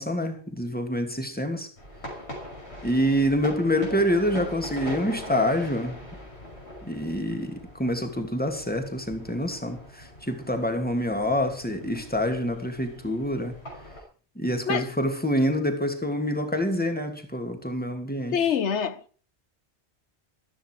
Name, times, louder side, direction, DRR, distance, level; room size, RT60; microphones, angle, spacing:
voice 1, 0.0-1.7 2.8-6.0 6.8-13.5 14.4-18.5, equal, 10° left, 2.7 m, -26 dB
sound 1, 1.8-14.0, left 1 dB, 70° left, 6.4 m, -41 dB
voice 2, 18.3-19.0, left 7 dB, 85° left, 1.2 m, -25 dB
15.0 x 14.0 x 4.8 m
omnidirectional pair, 1.1 m